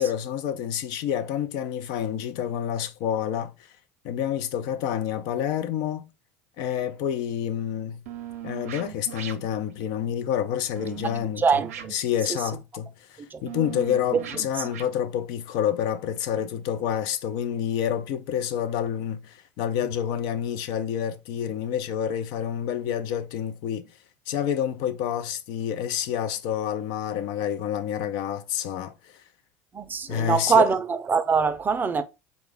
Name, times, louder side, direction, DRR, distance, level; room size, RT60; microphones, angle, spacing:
voice 1, 0.0-3.5 4.0-6.1 6.6-8.0 8.4-11.4 11.9-23.9 24.3-29.1 30.1-30.7, left 9 dB, 65° left, 0.5 m, -28 dB
sound 1, 6.8-6.9 8.1-9.6 10.8-11.3 11.6-12.3 13.5-14.9 16.2-16.3 18.9-19.0 19.8-19.9, right 9 dB, 90° right, 0.6 m, -39 dB
voice 2, 11.4-11.9 13.2-13.4 29.7-32.0, right 5 dB, 25° right, 0.5 m, -23 dB
3.9 x 2.3 x 3.4 m
hypercardioid pair, 90°, 8 cm